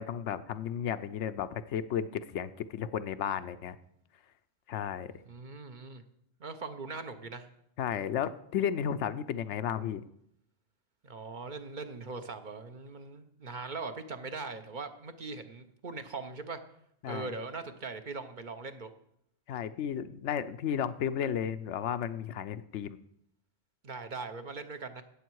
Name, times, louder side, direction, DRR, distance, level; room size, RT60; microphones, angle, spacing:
voice 1, 0.0-3.8 4.7-5.1 7.8-10.0 17.0-17.3 19.5-23.0, left 9 dB, 85° left, 12 dB, 0.9 m, -33 dB
voice 2, 5.3-6.0 6.4-7.5 11.0-16.6 17.1-18.9 23.8-25.0, right 4 dB, 45° right, 8 dB, 0.9 m, -40 dB
17.0 x 7.3 x 4.7 m, 0.73 s
omnidirectional pair, 1.2 m